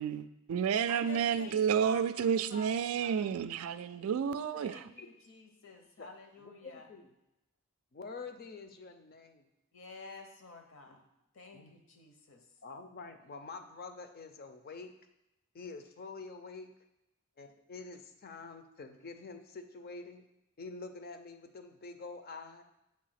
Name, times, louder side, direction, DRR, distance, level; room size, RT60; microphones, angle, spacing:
voice 1, 0.0-4.9, right 7 dB, 75° right, 13 dB, 0.3 m, -31 dB
voice 2, 0.9-3.3 4.6-6.9 9.7-11.1 11.3-12.5, left 2 dB, 65° left, 4 dB, 0.8 m, -51 dB
voice 3, 6.4-7.1 7.9-9.5 10.9-11.0 11.5-11.7 12.6-14.9 15.5-16.7 17.4-20.2 20.6-22.6, left 4 dB, 45° left, 7 dB, 0.5 m, -47 dB
7.3 x 2.8 x 5.7 m, 0.89 s
head